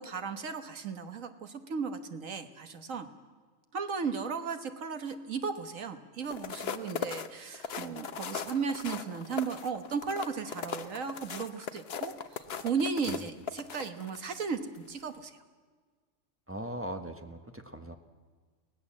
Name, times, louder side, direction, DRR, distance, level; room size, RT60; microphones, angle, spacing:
voice 1, 0.0-3.1 3.7-15.3, right 5 dB, 75° right, 8 dB, 1.7 m, -35 dB
sound 1, 6.2-14.4 14.9-15.1, left 7 dB, 55° left, 1.0 m, -39 dB
voice 2, 16.5-18.0, right 1 dB, 10° right, 6 dB, 1.3 m, -40 dB
23.5 x 18.0 x 7.4 m, 1.5 s
omnidirectional pair, 1.4 m